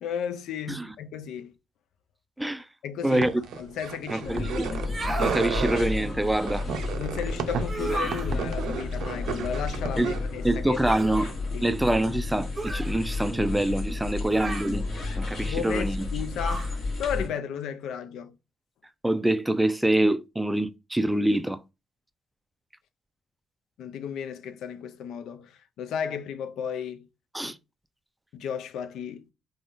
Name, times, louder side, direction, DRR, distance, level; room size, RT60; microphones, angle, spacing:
voice 1, 0.0-1.5 2.8-3.2 3.6-4.9 7.0-10.8 11.5-11.7 15.5-16.7 17.0-18.4 23.8-27.1 27.4-27.5 28.3-29.2, left 8 dB, 85° left, 0.3 m, -34 dB
voice 2, 3.0-3.3 4.1-4.7 5.2-6.7 10.0-10.1 10.4-11.3 11.6-14.8 15.2-16.0 19.0-21.6 27.3-27.6, right 1 dB, 5° right, 0.3 m, -25 dB
sound 1, 3.1-4.9 5.1-5.9 6.5-10.3, right 7 dB, 80° right, 0.5 m, -33 dB
sound 2, 4.2-17.3, left 3 dB, 55° left, 1.0 m, -32 dB
sound 3, 4.8-5.4 7.6-8.3 10.8-11.2 12.5-12.9 14.3-14.8 16.4-16.7, right 3 dB, 25° right, 0.7 m, -33 dB
3.6 x 2.1 x 2.4 m
cardioid pair, 90°, 0 cm